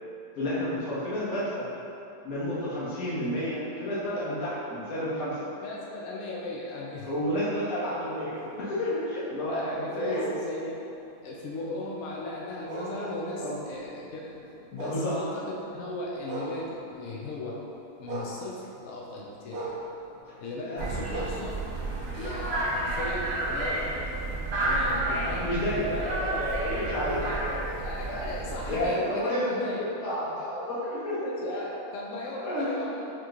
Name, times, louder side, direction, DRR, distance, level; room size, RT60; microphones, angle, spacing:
voice 1, 0.3-1.7 2.2-5.3 7.0-8.3 8.7-10.2 13.4-13.5 14.8-15.1 20.6-20.8 24.8-24.9 25.2-27.7 28.0-28.2 28.6-31.2 32.4-32.7, left 1 dB, 55° left, -9 dB, 1.4 m, -30 dB
voice 2, 5.2-7.1 9.4-10.8 11.2-14.3 14.7-15.4 15.7-17.6 18.0-19.8 20.4-21.6 22.1-23.9 24.6-25.4 25.7-26.0 27.0-29.8 31.2-33.1, left 2 dB, 75° left, -4 dB, 0.7 m, -37 dB
sound 1, 7.9-17.2 17.5-22.8 23.2-26.8, right 2 dB, 85° right, 0.5 m, -42 dB
sound 2, 20.8-28.9, right 2 dB, 55° right, 0.7 m, -31 dB
4.8 x 3.0 x 2.4 m, 2.8 s
omnidirectional pair, 1.8 m